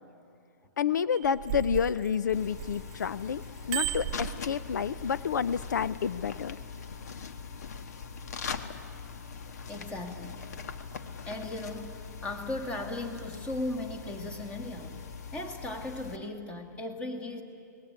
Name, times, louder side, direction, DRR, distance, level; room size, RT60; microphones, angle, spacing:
voice 1, 0.8-6.6, left 7 dB, 75° left, 16 dB, 0.7 m, -29 dB
Bicycle bell, 1.1-3.0 3.4-5.1 5.7-5.9, right 13 dB, 35° right, 0.9 m, -35 dB
sound 1, 2.3-16.2, left 5 dB, 60° left, 1.6 m, -42 dB
voice 2, 9.7-10.4 11.3-15.0 15.3-17.4, left 2 dB, 10° left, 6 dB, 2.0 m, -37 dB
27.0 x 19.5 x 9.6 m, 2.5 s
hypercardioid pair, 160°, 10 cm